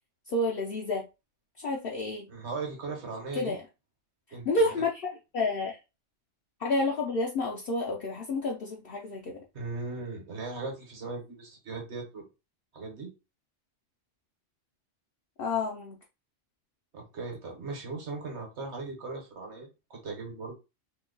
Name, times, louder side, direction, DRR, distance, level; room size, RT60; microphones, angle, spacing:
voice 1, 0.3-1.1 1.6-2.3 3.4-3.6 4.4-5.8 6.6-9.4 15.4-16.0, left 2 dB, 60° left, 0.7 m, -30 dB
voice 2, 2.3-3.6 4.3-4.7 9.5-12.2 12.7-13.1 16.9-20.5, right 3 dB, 60° right, 1.3 m, -38 dB
2.9 x 2.2 x 3.7 m
omnidirectional pair, 1.3 m